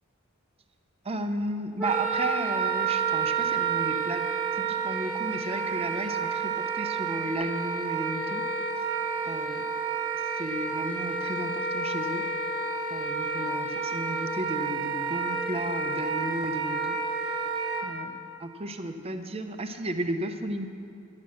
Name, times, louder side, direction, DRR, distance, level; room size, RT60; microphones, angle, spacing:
voice 1, 1.0-4.3 4.5-8.4 8.8-8.9 9.3-9.7 10.3-12.2 12.9-17.0 17.8-20.7, right 1 dB, 30° right, 6 dB, 0.6 m, -34 dB
Wind instrument woodwind instrument, 1.8-17.9, right 4 dB, 5° right, 1.7 m, -30 dB
10.5 x 10.5 x 6.4 m, 2.4 s
head